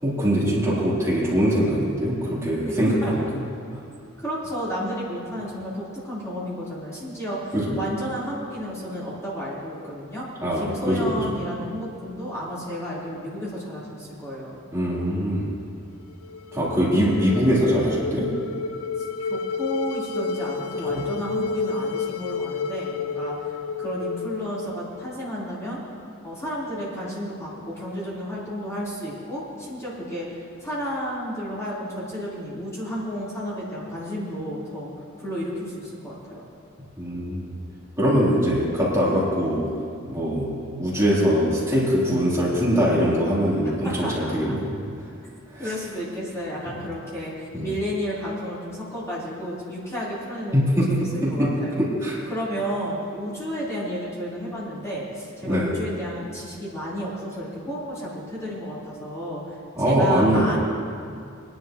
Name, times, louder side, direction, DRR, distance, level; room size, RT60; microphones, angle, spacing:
voice 1, 0.0-3.2 3.7-3.8 7.5-7.8 10.4-11.3 14.7-15.5 16.5-18.3 20.9-21.0 37.0-37.5 38.0-39.7 40.1-44.7 45.5-45.7 47.5-47.7 50.5-52.2 55.5-55.7 59.8-60.6, equal, 15° right, -9 dB, 3.6 m, -22 dB
voice 2, 2.6-3.1 4.2-10.3 10.5-14.6 19.3-23.5 23.8-25.8 26.2-34.9 35.2-36.4 43.8-44.5 45.6-51.8 52.3-60.6, equal, 15° left, -10 dB, 4.1 m, -32 dB
sound 1, 16.1-25.3, left 4 dB, 80° left, 0.6 m, -31 dB
22.5 x 11.0 x 3.1 m, 2.3 s
head